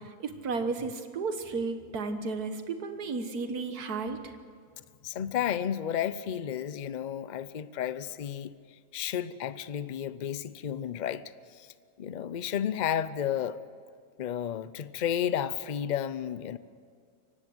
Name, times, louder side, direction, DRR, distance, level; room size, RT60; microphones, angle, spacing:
voice 1, 0.0-4.2, right 4 dB, 80° right, 1.8 m, -33 dB
voice 2, 5.0-8.5 8.9-11.2 11.5-11.7 12.0-13.6 14.2-16.6, left 9 dB, 55° left, 0.5 m, -32 dB
23.5 x 18.0 x 7.8 m
omnidirectional pair, 1.6 m